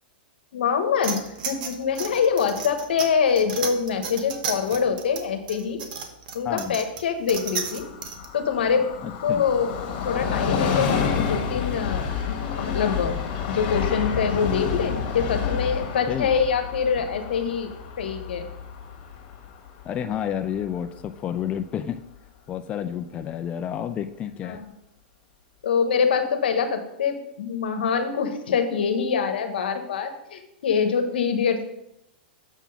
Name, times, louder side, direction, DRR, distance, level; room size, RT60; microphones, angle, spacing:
voice 1, 0.5-1.2 1.4-5.8 6.3-7.9 8.3-8.9 9.2-12.1 12.6-17.7 18.0-18.5 24.4-24.6 25.6-31.7, left 6 dB, 80° left, 7 dB, 1.0 m, -24 dB
sound 1, 1.0-8.3, right 6 dB, 60° right, 1.1 m, -33 dB
voice 2, 6.4-6.8 9.0-9.4 16.1-16.3 19.8-22.0 22.5-24.6, left 9 dB, 25° left, 8 dB, 0.4 m, -30 dB
Train, 7.3-20.6 21.0-21.1, left 6 dB, 55° left, 1.6 m, -29 dB
7.2 x 3.7 x 5.7 m, 0.83 s
hypercardioid pair, 130°, 5 cm